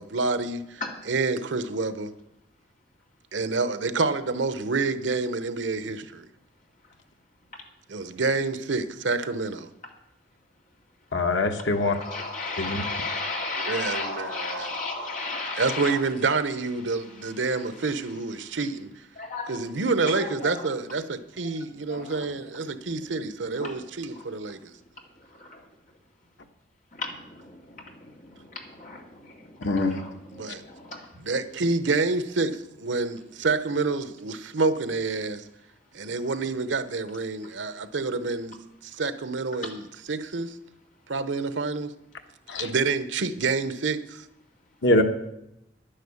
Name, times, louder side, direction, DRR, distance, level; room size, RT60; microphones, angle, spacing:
voice 1, 0.0-2.1 3.3-6.3 7.9-9.7 13.5-14.8 15.5-18.9 19.5-24.7 30.3-30.6 31.2-35.4 35.9-40.6 41.1-41.9 42.6-44.2, right 3 dB, 85° right, 0.9 m, -28 dB
voice 2, 11.1-11.9 12.6-12.8 29.6-30.0 42.5-42.7 44.8-45.0, left 2 dB, 85° left, 1.3 m, -23 dB
voice 3, 11.8-16.0 19.2-19.5 20.1-20.6 21.9-22.2 23.6-23.7 25.4-25.6 26.9-27.6 28.2-29.0 29.6-31.0, left 3 dB, 45° left, 2.4 m, -34 dB
10.5 x 10.0 x 7.1 m
head